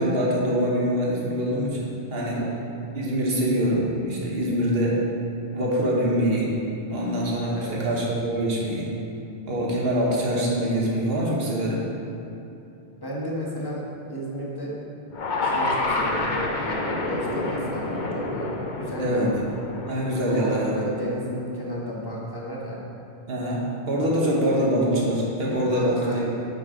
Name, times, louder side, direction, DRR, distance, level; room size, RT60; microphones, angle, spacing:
voice 1, 0.0-2.4 2.9-5.0 5.5-6.5 6.9-8.9 9.5-11.9 19.0-19.3 19.9-20.8 23.3-23.6 23.9-26.3, equal, 65° right, -4 dB, 1.4 m, -24 dB
voice 2, 2.2-2.5 7.5-7.8 13.0-13.8 14.1-14.7 15.4-18.5 18.7-19.4 20.3-22.8 25.6-26.3, equal, 20° left, -5 dB, 1.3 m, -33 dB
sound 1, 15.1-21.4, left 2 dB, 50° left, 0.8 m, -29 dB
9.5 x 5.4 x 3.8 m, 2.8 s
omnidirectional pair, 1.1 m